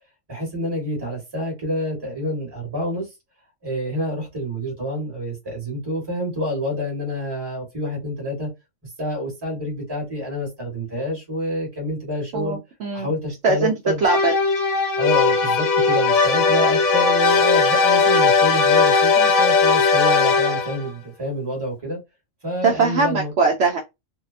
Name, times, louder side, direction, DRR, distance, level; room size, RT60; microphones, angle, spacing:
voice 1, 0.3-3.1 3.6-8.5 8.8-12.6 12.9-14.0 15.0-22.0 22.4-23.3, left 1 dB, 20° right, 1.1 m, -28 dB
voice 2, 12.3-13.1 13.4-13.7 14.0-14.7 22.6-23.8, right 4 dB, 65° right, 0.8 m, -21 dB
sound 1, 14.0-20.9, left 4 dB, 65° left, 0.9 m, -18 dB
2.7 x 2.1 x 2.4 m
omnidirectional pair, 1.4 m